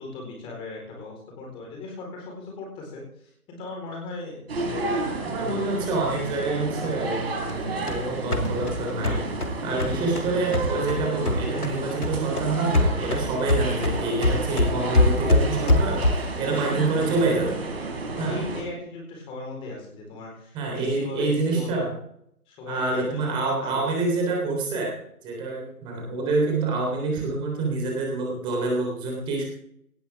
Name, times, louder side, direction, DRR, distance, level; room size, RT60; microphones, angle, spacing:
voice 1, 0.0-5.7 9.6-10.1 18.1-21.9 22.5-23.8, left 3 dB, 10° left, 0 dB, 4.2 m, -38 dB
sound 1, 4.5-18.6, right 3 dB, 40° right, 4.3 m, -31 dB
voice 2, 5.3-9.2 9.6-17.6 18.2-18.4 20.5-21.9 22.7-25.0 25.2-29.4, right 3 dB, 10° right, 0 dB, 3.5 m, -27 dB
sound 2, 7.5-11.8 12.0-16.4, left 1 dB, 85° left, 2.8 m, -24 dB
18.0 x 12.5 x 3.6 m, 0.69 s
figure-of-eight pair, 150°, 44 cm